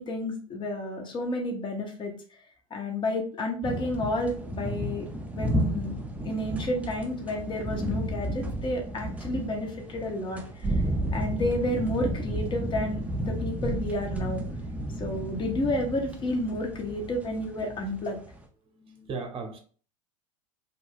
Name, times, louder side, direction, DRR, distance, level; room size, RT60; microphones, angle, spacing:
voice 1, 0.0-2.1 2.7-6.0 6.2-10.7 11.1-14.4 15.0-18.2, left 1 dB, 30° left, 3 dB, 0.9 m, -31 dB
sound 1, 3.6-18.4, equal, 10° right, 0.5 m, -33 dB
voice 2, 18.6-19.6, right 4 dB, 35° right, 3 dB, 0.9 m, -37 dB
2.5 x 2.2 x 3.4 m, 0.42 s
hypercardioid pair, 85°, 17 cm